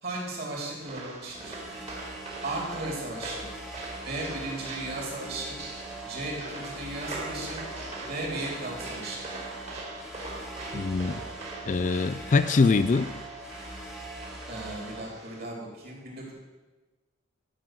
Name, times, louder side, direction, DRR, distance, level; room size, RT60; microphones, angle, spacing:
voice 1, 0.0-1.6 2.4-3.4 4.0-5.6 6.0-7.6 8.0-9.2 14.5-16.3, right 2 dB, 50° right, -3 dB, 3.9 m, -36 dB
sound 1, 0.8-15.4, right 2 dB, 30° right, 2.3 m, -42 dB
sound 2, 1.3-15.1, right 2 dB, ahead, 1.2 m, -42 dB
voice 2, 10.7-11.2 11.7-13.1, left 4 dB, 35° left, 13 dB, 0.3 m, -23 dB
12.0 x 5.8 x 7.6 m, 1.2 s
head